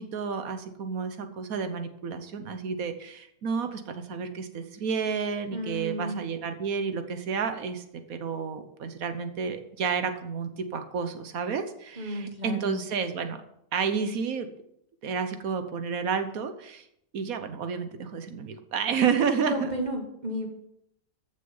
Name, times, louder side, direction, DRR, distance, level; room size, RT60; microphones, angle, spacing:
voice 1, 0.0-13.4 13.7-14.5 15.0-16.9 17.1-19.7, right 6 dB, 85° right, 8 dB, 1.5 m, -30 dB
voice 2, 5.5-6.2 12.0-12.8 19.5-20.5, equal, 30° right, 2 dB, 1.9 m, -33 dB
13.5 x 6.6 x 5.5 m, 0.77 s
omnidirectional pair, 1.4 m